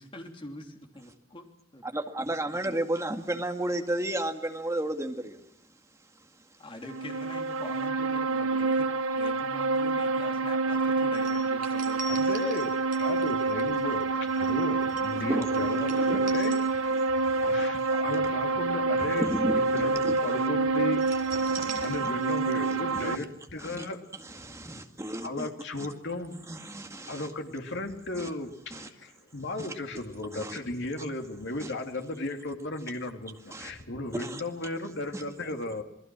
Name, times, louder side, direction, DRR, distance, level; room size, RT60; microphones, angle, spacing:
voice 1, 0.0-1.5 1.7-1.8 6.6-8.9 9.1-12.3, left 1 dB, 25° left, 3.2 m, -44 dB
voice 2, 1.8-5.4 15.1-16.4 17.3-17.7 19.0-20.4 21.4-23.2 23.6-23.9 24.2-25.5 25.8-25.9 26.5-27.3 28.1-28.3 28.7-28.9 29.6-29.7 30.3-30.6 31.6-31.7 33.5-33.7 34.1-34.4 35.1-35.2, right 1 dB, 15° right, 2.0 m, -34 dB
sound 1, 6.8-23.2, right 3 dB, 85° right, 1.1 m, -27 dB
sound 2, 11.1-17.2 17.6-17.8 20.9-22.5 22.8-22.9, right 3 dB, 45° right, 4.1 m, -43 dB
voice 3, 12.1-24.0 25.2-26.4 27.1-35.8, left 2 dB, 60° left, 2.9 m, -36 dB
28.0 x 20.5 x 6.2 m
head